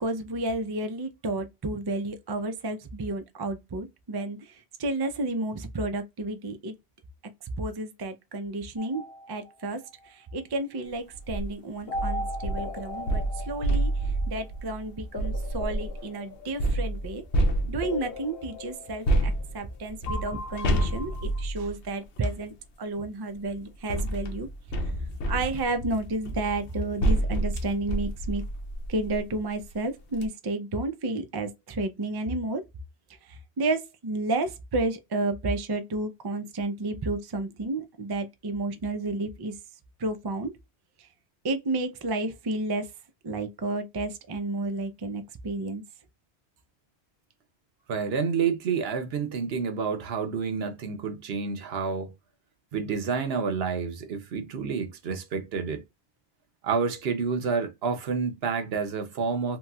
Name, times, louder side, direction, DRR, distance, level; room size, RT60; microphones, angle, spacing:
voice 1, 0.0-4.4 4.8-6.7 7.6-9.8 10.1-13.9 14.3-17.2 17.7-24.5 25.3-28.4 28.9-32.6 33.6-39.5 40.0-40.5 41.4-42.9 43.2-45.8, right 2 dB, 40° right, 0.3 m, -31 dB
sound 1, 8.8-10.1 11.9-14.5 15.1-17.1 17.8-19.7 20.1-21.4, left 2 dB, 65° left, 1.0 m, -39 dB
sound 2, 11.1-11.5 11.9-16.0 16.6-18.1 19.0-22.4 23.4-29.3 29.7-29.8 30.1-30.3, right 1 dB, 85° left, 1.0 m, -29 dB
voice 2, 47.9-52.1 52.7-55.8 56.6-59.6, right 5 dB, 65° right, 0.9 m, -29 dB
3.0 x 2.9 x 2.2 m
omnidirectional pair, 1.1 m